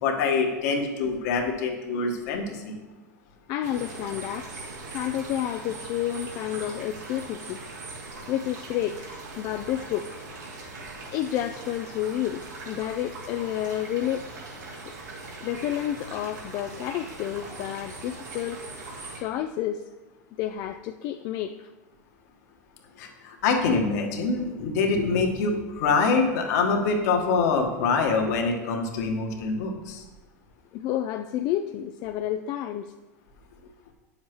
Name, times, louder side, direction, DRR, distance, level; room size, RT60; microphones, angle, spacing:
voice 1, 0.0-2.7 23.0-30.0, left 4 dB, 65° left, 2 dB, 1.5 m, -25 dB
voice 2, 3.5-4.5 4.9-7.6 8.3-10.2 11.1-14.2 15.4-18.6 19.2-19.8 20.4-21.7 30.7-32.9, left 11 dB, 45° left, 7 dB, 0.4 m, -30 dB
sound 1, 3.6-19.2, right 3 dB, 85° right, 2.7 m, -41 dB
9.2 x 7.3 x 3.1 m, 1.2 s
hypercardioid pair, 100°, 9 cm